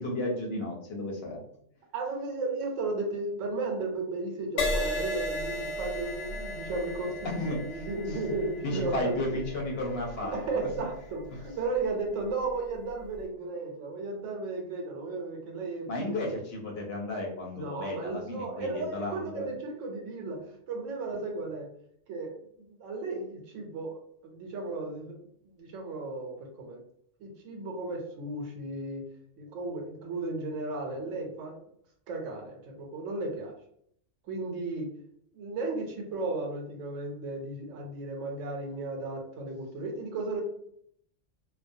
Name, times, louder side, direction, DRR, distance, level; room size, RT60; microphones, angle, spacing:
voice 1, 0.0-1.4 7.4-7.6 8.1-8.2 8.6-10.7 15.9-19.5, left 1 dB, 60° left, -1 dB, 0.8 m, -33 dB
voice 2, 1.9-9.4 10.3-16.2 17.6-21.7 22.1-25.2 25.4-26.8 27.2-29.1 29.4-31.5 32.1-33.5 34.2-34.9 35.3-40.4, right 3 dB, 85° right, 2 dB, 1.0 m, -35 dB
Crash cymbal, 4.6-12.2 12.9-13.2, left 1 dB, 90° left, 1.0 m, -36 dB
2.3 x 2.2 x 2.5 m, 0.68 s
omnidirectional pair, 1.3 m